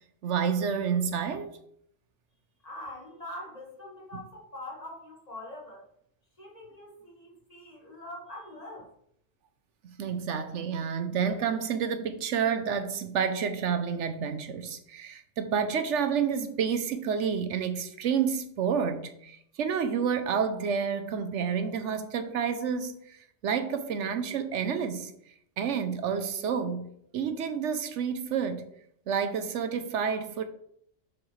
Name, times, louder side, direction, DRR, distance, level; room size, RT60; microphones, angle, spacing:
voice 1, 0.2-1.5 9.8-25.1 25.6-28.7 29.1-30.4, right 7 dB, 75° right, 0.9 m, -29 dB
voice 2, 2.6-5.9 6.4-8.9, left 1 dB, 30° left, 1.7 m, -43 dB
7.2 x 6.0 x 3.1 m
omnidirectional pair, 1.3 m